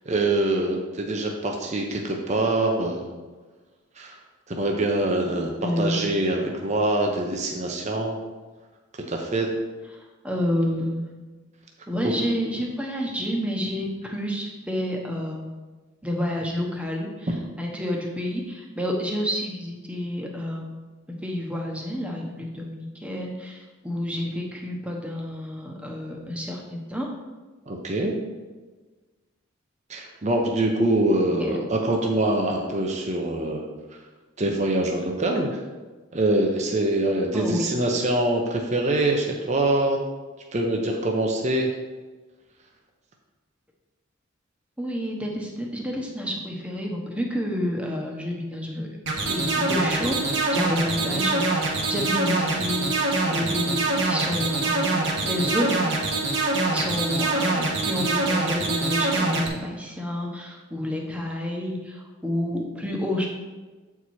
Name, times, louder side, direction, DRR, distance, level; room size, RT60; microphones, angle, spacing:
voice 1, 0.1-3.1 4.0-4.2 4.5-8.2 9.1-9.5 12.0-12.1 27.7-28.1 29.9-33.7 34.4-35.6 36.1-40.0 40.5-41.7, right 1 dB, 35° right, 1 dB, 0.8 m, -24 dB
voice 2, 5.6-6.2 9.9-11.1 11.9-15.5 16.0-20.8 21.2-27.1 31.4-31.6 37.3-37.7 44.8-48.9 49.3-55.9 56.7-63.3, equal, 5° right, 0 dB, 1.0 m, -29 dB
sound 1, 49.1-59.5, right 3 dB, 60° right, 1.4 m, -24 dB
8.2 x 4.7 x 4.3 m, 1.3 s
head